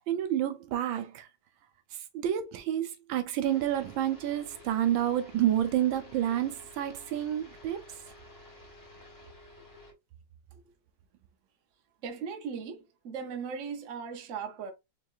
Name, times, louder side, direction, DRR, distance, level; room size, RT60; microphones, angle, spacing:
voice 1, 0.1-1.3 2.1-7.8, right 11 dB, 85° right, 1.4 m, -29 dB
sound 1, 3.4-9.9, left 1 dB, 10° left, 1.3 m, -52 dB
voice 2, 12.0-14.7, right 6 dB, 55° right, 0.9 m, -38 dB
4.6 x 3.0 x 2.5 m
omnidirectional pair, 2.1 m